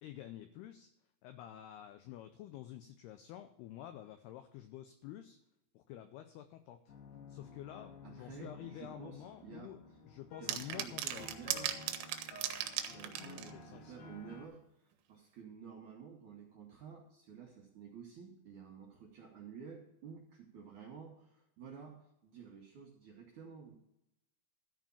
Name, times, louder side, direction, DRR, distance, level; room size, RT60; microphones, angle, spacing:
voice 1, 0.0-0.9 1.2-5.4 5.7-6.9 7.3-9.8 10.1-11.3 12.9-14.0, left 12 dB, 85° left, 8 dB, 2.3 m, -49 dB
sound 1, 6.9-14.5, left 4 dB, 65° left, 3.3 m, -53 dB
voice 2, 8.0-9.7 10.4-11.8 12.9-14.6 15.1-23.8, right 6 dB, 65° right, -2 dB, 2.0 m, -51 dB
sound 2, 10.5-13.5, right 12 dB, 85° right, 3.2 m, -37 dB
13.5 x 5.0 x 7.0 m, 0.81 s
omnidirectional pair, 5.3 m